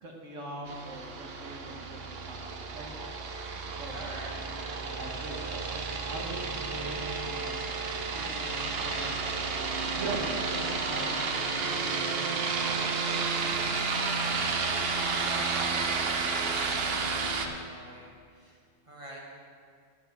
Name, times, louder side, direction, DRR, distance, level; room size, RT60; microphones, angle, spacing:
voice 1, 0.0-2.9 3.7-4.0 4.9-5.6 6.1-7.6 8.1-9.2 9.9-12.4, right 1 dB, 70° right, -1 dB, 1.7 m, -41 dB
sound 1, 0.7-17.5, right 4 dB, 55° right, 0.9 m, -31 dB
voice 2, 3.9-4.3 14.9-16.1 16.5-19.2, right 1 dB, 25° right, -4 dB, 1.5 m, -47 dB
8.9 x 7.4 x 7.1 m, 2.2 s
omnidirectional pair, 1.4 m